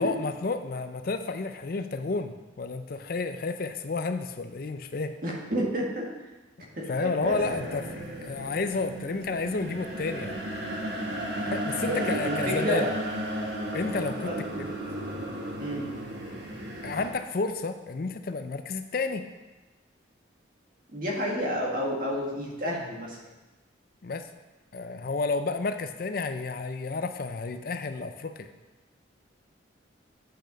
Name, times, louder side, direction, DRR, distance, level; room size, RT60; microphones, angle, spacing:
voice 1, 0.0-5.1 6.9-10.3 11.5-12.9 13.7-14.3 16.8-19.2 24.0-24.3 24.7-28.5, left 3 dB, 50° left, 9 dB, 0.5 m, -31 dB
voice 2, 5.2-6.1 6.8-7.3 7.6-7.7 11.4-11.5 11.8-12.9 14.2-14.4 15.6-15.8 20.9-23.2, equal, 45° right, -2 dB, 1.8 m, -30 dB
sound 1, 7.2-17.1, right 1 dB, 65° right, 1.3 m, -34 dB
8.5 x 6.6 x 5.1 m, 1.1 s
head